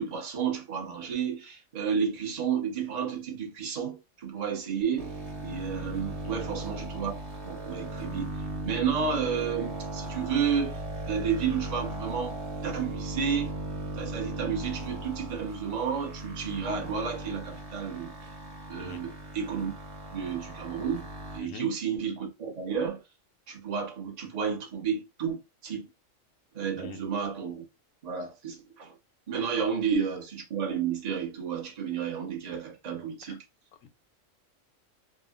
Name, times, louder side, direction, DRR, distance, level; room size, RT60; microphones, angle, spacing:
voice 1, 0.0-5.1 5.4-8.3 8.6-12.4 12.6-13.5 13.9-18.1 18.7-19.7 20.1-21.0 21.3-23.0 23.5-25.9 26.5-27.6 28.0-28.9 29.3-33.4, right 7 dB, 35° right, 0.8 m, -31 dB
sound 1, 5.0-21.4, right 2 dB, 55° right, 1.3 m, -37 dB
voice 2, 18.8-19.0 21.5-21.6 26.8-27.0, left 5 dB, 75° left, 1.0 m, -42 dB
3.5 x 2.0 x 2.4 m
omnidirectional pair, 1.4 m